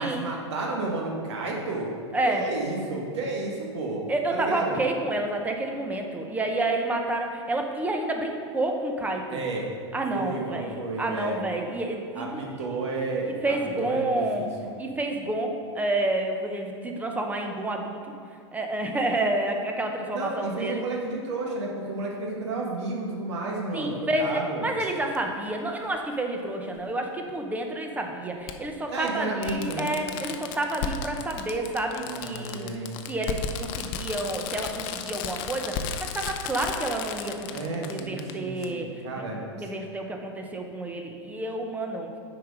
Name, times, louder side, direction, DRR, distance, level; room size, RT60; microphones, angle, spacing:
voice 1, 0.0-1.9 2.3-4.0 4.3-4.8 9.3-9.6 10.1-11.4 12.1-14.7 20.1-24.7 28.9-29.9 31.9-33.0 37.5-39.4, right 2 dB, 70° right, -1 dB, 1.7 m, -32 dB
voice 2, 4.1-9.4 9.9-12.4 13.4-14.4 14.8-18.0 18.5-20.8 23.7-32.7 33.1-42.1, right 2 dB, 10° right, 3 dB, 0.9 m, -29 dB
Fireworks, 25.2-25.3 26.8-26.9 28.5-28.6 29.1-29.2 29.4-38.3 38.6-38.7, left 7 dB, 50° left, 0.6 m, -34 dB
7.9 x 4.9 x 4.9 m, 2.4 s
hypercardioid pair, 110°, 16 cm